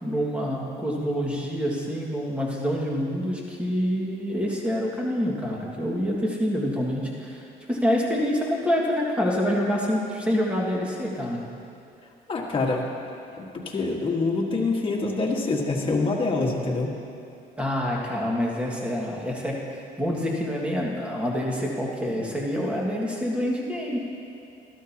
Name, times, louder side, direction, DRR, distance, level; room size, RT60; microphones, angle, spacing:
voice 1, 0.0-7.4 7.7-11.4 17.6-24.0, equal, 5° right, -3 dB, 2.0 m, -26 dB
voice 2, 12.3-12.8 13.4-16.9, left 3 dB, 30° left, -2 dB, 1.7 m, -25 dB
13.5 x 12.5 x 2.9 m, 2.5 s
cardioid pair, 110°, 17 cm